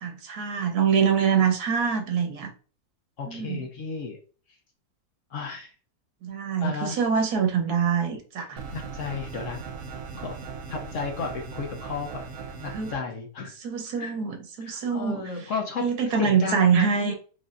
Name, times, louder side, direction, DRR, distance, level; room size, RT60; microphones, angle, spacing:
voice 1, 0.0-2.5 3.3-3.6 6.2-8.6 12.7-12.9 13.6-15.2 15.8-17.1, right 6 dB, 85° right, 4 dB, 1.4 m, -24 dB
voice 2, 3.2-4.2 5.3-5.7 6.6-7.0 8.7-9.6 10.2-10.4 10.7-12.3 12.6-13.5 14.0-14.1 14.6-15.8 16.1-17.1, left 5 dB, 65° left, 2 dB, 0.9 m, -33 dB
sound 1, 8.6-13.0, right 5 dB, 65° right, 0.9 m, -38 dB
4.8 x 2.6 x 2.5 m, 0.38 s
omnidirectional pair, 1.6 m